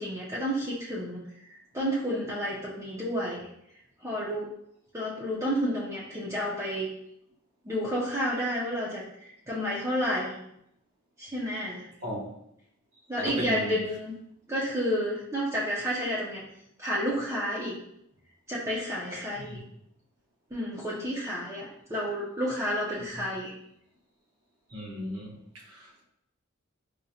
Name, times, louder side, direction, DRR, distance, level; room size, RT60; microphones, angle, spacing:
voice 1, 0.0-1.5 1.7-3.5 4.0-4.5 4.9-6.9 7.6-10.4 11.2-11.9 13.1-14.1 14.5-16.4 16.8-17.8 18.5-19.6 20.5-23.5, equal, 15° right, -7 dB, 0.5 m, -30 dB
voice 2, 13.2-13.8 19.5-19.6 24.7-26.0, left 1 dB, 65° right, -2 dB, 1.0 m, -36 dB
4.9 x 2.2 x 2.7 m, 0.76 s
head